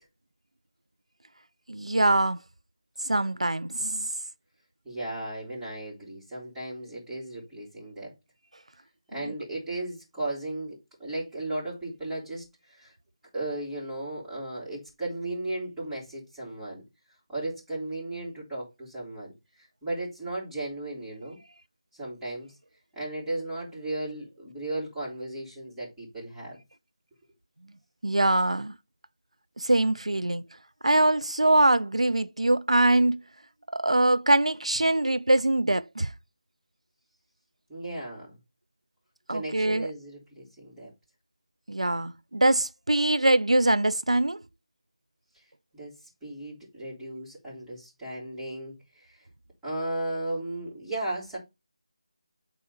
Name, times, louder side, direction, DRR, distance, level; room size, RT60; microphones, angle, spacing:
voice 1, 1.7-2.4 3.0-4.1 28.0-28.7 29.6-30.4 30.8-33.2 33.7-36.1 39.3-39.9 41.7-44.4, right 2 dB, 85° right, 0.4 m, -23 dB
voice 2, 4.8-8.1 9.1-12.9 13.3-16.8 17.3-19.3 19.6-21.4 21.9-22.5 22.9-26.6 37.7-38.4 39.3-40.9 45.3-45.4 45.7-49.3 49.6-51.4, right 2 dB, 5° right, 3.4 m, -35 dB
8.8 x 3.7 x 4.2 m
figure-of-eight pair, 160°, 3 cm